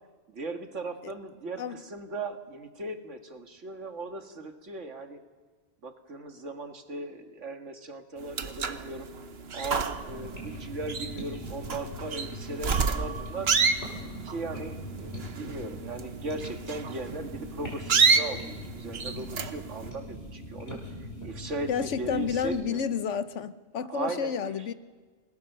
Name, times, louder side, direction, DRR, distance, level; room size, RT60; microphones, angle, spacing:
voice 1, 0.3-5.2 5.8-9.1 9.5-13.6 14.2-22.8 23.9-24.5, right 3 dB, 80° right, 2.2 m, -38 dB
sound 1, 8.2-19.9, right 5 dB, 55° right, 1.3 m, -29 dB
sound 2, 10.1-22.6, equal, 60° left, 6.3 m, -41 dB
voice 2, 21.7-24.7, left 6 dB, 75° left, 1.2 m, -30 dB
29.0 x 20.5 x 6.8 m
omnidirectional pair, 1.2 m